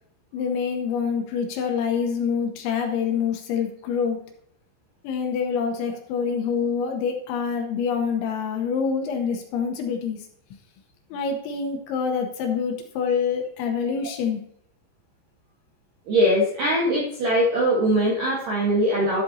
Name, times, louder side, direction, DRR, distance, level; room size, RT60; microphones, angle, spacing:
voice 1, 0.3-4.2 5.0-10.3 11.1-14.4, left 6 dB, 75° left, 4 dB, 3.0 m, -26 dB
voice 2, 16.1-19.2, equal, 70° right, -2 dB, 2.0 m, -21 dB
12.0 x 7.5 x 2.7 m, 0.70 s
omnidirectional pair, 5.9 m